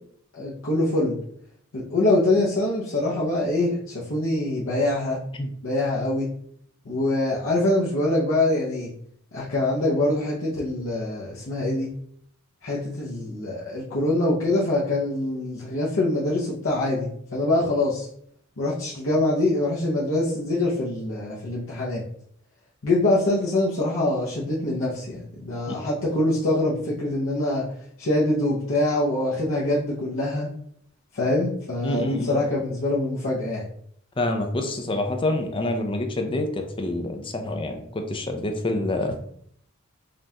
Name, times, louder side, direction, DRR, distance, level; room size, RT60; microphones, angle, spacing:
voice 1, 0.3-1.1 1.7-5.2 5.6-6.3 6.8-8.9 9.3-11.9 12.6-18.1 18.6-22.0 22.8-27.7 28.0-30.5 31.1-33.7, left 2 dB, 70° left, -7 dB, 0.8 m, -24 dB
voice 2, 31.8-32.4 34.2-39.2, left 1 dB, 25° left, 5 dB, 0.4 m, -27 dB
5.2 x 2.4 x 2.8 m, 0.65 s
head